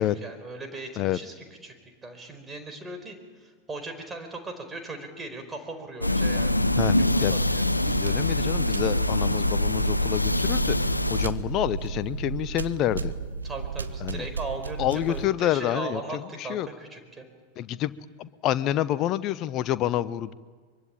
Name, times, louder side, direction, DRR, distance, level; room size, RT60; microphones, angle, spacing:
voice 1, 0.0-1.3 1.6-1.8 2.0-6.6 6.9-7.6 13.4-17.3, right 3 dB, 15° right, 6 dB, 4.6 m, -38 dB
sound 1, 6.0-11.3, left 1 dB, 85° left, 0.8 m, -24 dB
voice 2, 6.8-7.4 7.9-13.1 14.0-14.2 14.8-16.7 17.6-17.9 18.2-20.3, left 12 dB, 35° left, 16 dB, 0.9 m, -28 dB
sound 2, 7.9-15.3, right 5 dB, 75° right, 1.0 m, -34 dB
24.0 x 23.5 x 8.7 m, 1.5 s
figure-of-eight pair, 90°, 0 cm